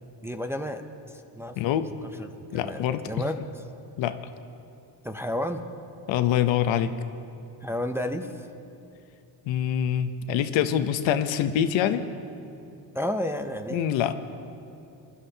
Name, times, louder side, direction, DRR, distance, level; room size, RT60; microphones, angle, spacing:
voice 1, 0.2-0.8 1.1-1.6 2.2-2.3 2.5-3.4 5.0-5.6 7.6-8.5 12.9-13.9, left 1 dB, 5° right, 5 dB, 0.4 m, -31 dB
voice 2, 1.6-1.9 2.5-3.0 4.0-4.2 6.1-6.9 9.5-12.0 13.7-14.1, left 10 dB, 85° left, 10 dB, 0.8 m, -25 dB
22.5 x 12.5 x 2.8 m, 2.7 s
cardioid pair, 120°, 45 cm